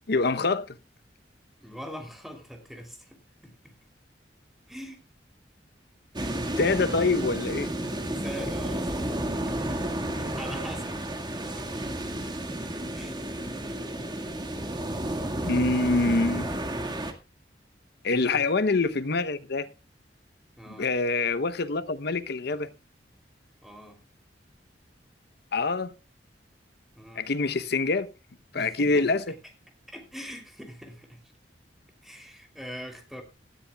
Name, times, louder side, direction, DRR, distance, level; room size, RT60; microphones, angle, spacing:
voice 1, 0.1-0.8 6.6-7.7 15.4-16.5 18.0-19.7 20.7-22.7 25.5-25.9 27.2-28.1 28.5-29.2, left 3 dB, 65° left, 0.8 m, -25 dB
voice 2, 1.6-3.7 4.7-5.0 8.2-9.8 10.2-11.0 11.6-11.9 12.9-13.2 18.1-18.4 20.6-20.9 23.6-24.0 27.0-27.2 28.5-29.1 29.9-31.2 32.0-33.2, equal, ahead, 3.1 m, -43 dB
sound 1, 6.1-17.1, right 1 dB, 25° right, 1.8 m, -32 dB
17.5 x 13.0 x 2.3 m
head